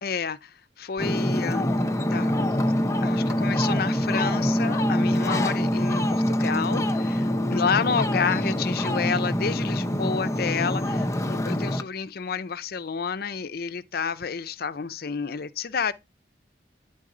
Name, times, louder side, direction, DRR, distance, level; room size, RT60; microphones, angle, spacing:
voice 1, 0.0-1.6 2.1-2.3 3.0-15.9, left 6 dB, 60° left, 0.6 m, -30 dB
Ocean, 1.0-11.8, equal, 15° left, 0.6 m, -25 dB
10.5 x 4.0 x 3.8 m
head